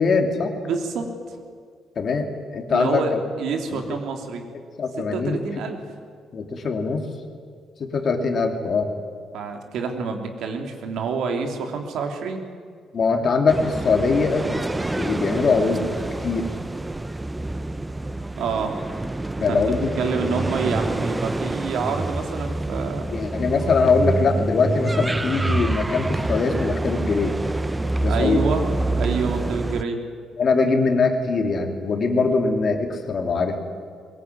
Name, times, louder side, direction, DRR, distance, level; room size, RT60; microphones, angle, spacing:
voice 1, 0.0-0.5 2.0-3.0 3.7-3.8 4.8-5.4 6.3-7.1 7.8-8.9 12.9-14.5 14.9-15.9 16.2-16.5 19.4-19.9 20.2-20.3 23.1-27.4 28.0-28.4 30.4-33.6, left 4 dB, 35° left, 4 dB, 2.7 m, -22 dB
voice 2, 0.6-1.4 2.7-3.1 3.4-4.5 5.1-5.8 9.3-12.4 18.3-18.7 19.5-19.6 20.0-23.1 28.1-30.0, right 5 dB, 65° right, 4 dB, 3.3 m, -27 dB
sound 1, 13.5-29.8, right 2 dB, 10° right, 0.5 m, -27 dB
22.5 x 21.0 x 9.7 m, 2.1 s
cardioid pair, 170°, 0 cm